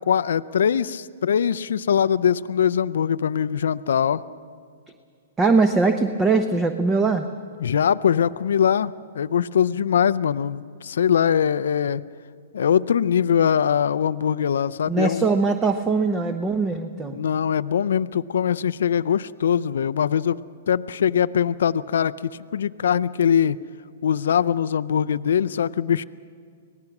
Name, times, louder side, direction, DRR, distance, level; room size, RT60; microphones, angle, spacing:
voice 1, 0.1-4.2 7.6-12.0 12.5-15.3 17.1-20.4 20.7-22.1 22.5-23.6 24.0-26.0, left 8 dB, 75° left, 15 dB, 0.4 m, -22 dB
voice 2, 5.4-7.3 14.9-17.2, right 4 dB, 15° right, 8 dB, 0.9 m, -21 dB
25.0 x 18.0 x 6.0 m, 2.2 s
hypercardioid pair, 130°, 0 cm